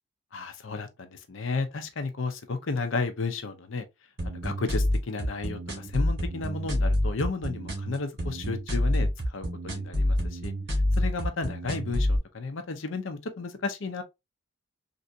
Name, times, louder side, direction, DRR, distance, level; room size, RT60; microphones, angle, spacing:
voice 1, 0.3-3.8 4.2-10.5 11.0-14.0, left 4 dB, 80° left, 0.6 m, -33 dB
sound 1, 4.2-12.2, left 1 dB, 55° right, 1.9 m, -27 dB
3.4 x 2.7 x 2.6 m
head